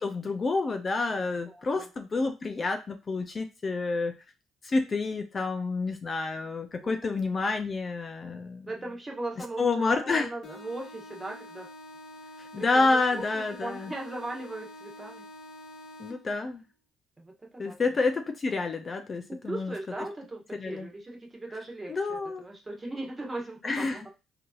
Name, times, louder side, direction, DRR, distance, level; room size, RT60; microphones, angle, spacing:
voice 1, 0.0-4.1 4.6-8.7 9.6-10.3 12.4-13.9 16.0-16.6 17.6-19.7 20.5-20.9 21.9-22.5 23.6-24.0, left 3 dB, 40° left, 7 dB, 0.5 m, -29 dB
voice 2, 1.2-1.9 6.7-7.3 8.7-11.7 12.6-15.2 17.2-17.8 19.3-24.1, right 2 dB, 20° right, 0 dB, 1.2 m, -39 dB
sound 1, 10.4-16.4, left 1 dB, 65° left, 0.8 m, -47 dB
3.8 x 2.8 x 2.4 m, 0.29 s
supercardioid pair, 70°, 0 cm